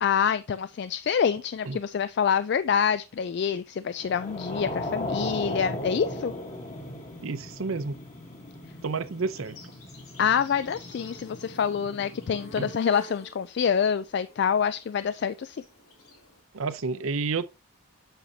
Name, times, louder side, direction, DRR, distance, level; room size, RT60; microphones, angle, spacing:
voice 1, 0.0-6.3 10.2-15.6, left 7 dB, 50° left, 0.3 m, -26 dB
sound 1, 4.0-12.7, left 1 dB, 35° left, 1.2 m, -37 dB
voice 2, 7.2-8.0 8.8-9.5 12.6-12.7 16.5-17.5, right 4 dB, 70° right, 0.6 m, -30 dB
Insect, 8.8-16.4, left 2 dB, 85° left, 3.1 m, -50 dB
7.9 x 6.4 x 2.7 m
head